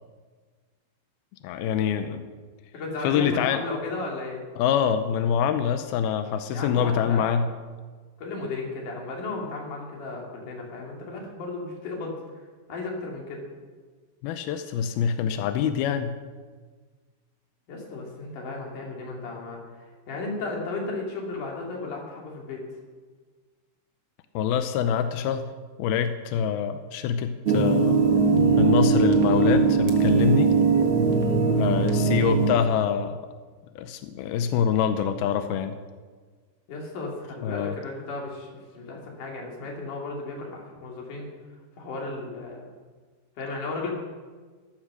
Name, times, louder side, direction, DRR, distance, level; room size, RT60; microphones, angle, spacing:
voice 1, 1.4-2.2 3.0-3.6 4.6-7.5 14.2-16.2 24.3-25.5 25.8-28.0 28.6-30.5 31.5-33.2 33.8-35.7 37.4-37.8, left 8 dB, 80° left, 8 dB, 2.2 m, -25 dB
voice 2, 2.7-4.4 6.5-7.4 8.2-12.1 12.7-13.4 17.7-19.6 20.1-22.6 36.7-38.5 38.7-41.3 41.8-42.6 43.4-43.9, left 3 dB, 45° left, -1 dB, 4.2 m, -34 dB
sound 1, 27.5-32.5, right 4 dB, 70° right, 1.2 m, -20 dB
15.0 x 13.5 x 6.4 m, 1.5 s
omnidirectional pair, 5.3 m